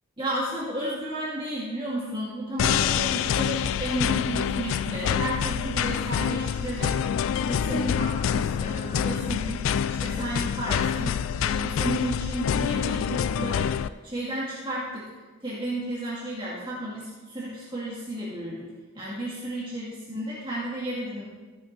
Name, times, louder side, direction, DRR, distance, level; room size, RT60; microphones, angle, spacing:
voice 1, 0.2-6.9 7.3-15.1 15.4-18.7 18.9-21.2, right 1 dB, 25° right, -8 dB, 2.2 m, -33 dB
sound 1, 2.6-13.9, left 8 dB, 75° left, 0.3 m, -26 dB
14.5 x 9.7 x 2.7 m, 1.3 s
head